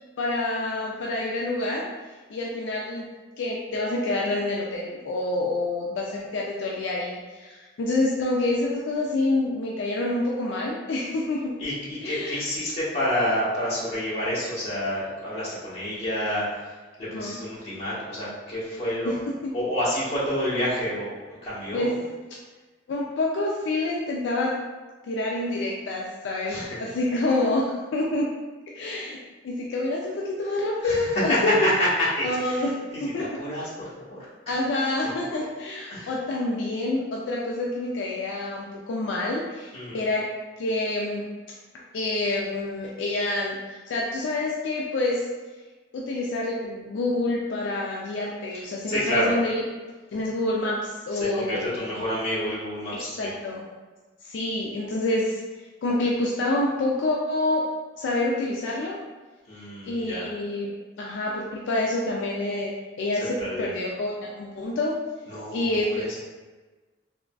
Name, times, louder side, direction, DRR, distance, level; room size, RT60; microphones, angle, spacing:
voice 1, 0.2-1.9 2.3-3.1 3.4-11.5 12.0-12.4 17.1-17.4 19.0-19.5 21.7-21.9 22.9-24.6 25.0-28.3 28.7-29.2 29.4-31.7 32.2-33.4 34.5-40.2 40.6-41.3 41.9-43.6 43.9-45.2 45.9-49.6 50.1-51.9 53.0-53.6 54.2-55.4 55.8-57.6 58.0-59.0 59.8-62.7 63.0-64.9 65.5-65.9, left 2 dB, 70° left, -3 dB, 0.3 m, -27 dB
voice 2, 11.6-16.6 17.0-19.1 19.5-21.9 26.5-26.8 30.8-32.6 32.9-34.2 35.9-36.1 39.7-40.0 48.9-49.3 51.1-53.3 59.5-60.2 63.4-63.7 65.3-65.6 65.9-66.2, left 1 dB, 35° left, -11 dB, 1.3 m, -28 dB
3.5 x 2.2 x 2.3 m, 1.3 s
head